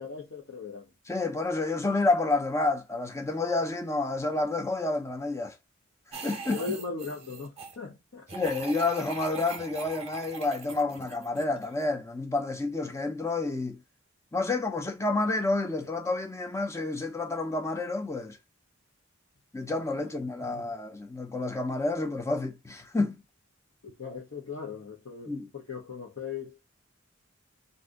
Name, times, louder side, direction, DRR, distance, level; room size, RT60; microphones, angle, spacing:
voice 1, 0.0-0.9 6.1-8.3 19.9-20.1 20.4-20.6 23.8-26.8, left 5 dB, 75° left, 0.9 m, -39 dB
voice 2, 1.1-5.6 6.1-6.6 8.3-13.8 14.3-18.4 19.5-23.2 25.3-25.5, left 3 dB, 15° left, 0.5 m, -29 dB
sound 1, 6.1-7.8 8.3-11.8, right 4 dB, 30° right, 0.7 m, -41 dB
2.6 x 2.5 x 3.6 m
head